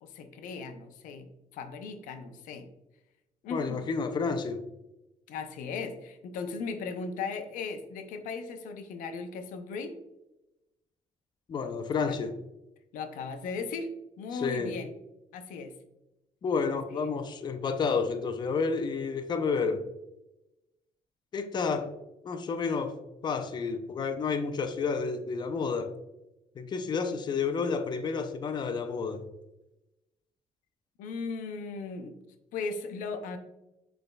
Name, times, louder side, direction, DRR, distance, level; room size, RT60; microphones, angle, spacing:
voice 1, 0.0-1.3 1.5-2.7 3.4-3.8 5.3-9.9 12.0-12.2 12.9-13.9 14.2-14.9 15.3-15.7 17.0-17.2 31.0-32.1 32.5-33.4, left 4 dB, 90° left, 0.6 m, -37 dB
voice 2, 3.5-4.6 11.5-12.3 14.3-14.8 16.4-19.8 21.3-21.9 22.2-23.0 23.2-25.9 26.6-29.2, left 5 dB, 35° left, 0.4 m, -30 dB
6.3 x 3.4 x 2.2 m
cardioid pair, 110°, 13 cm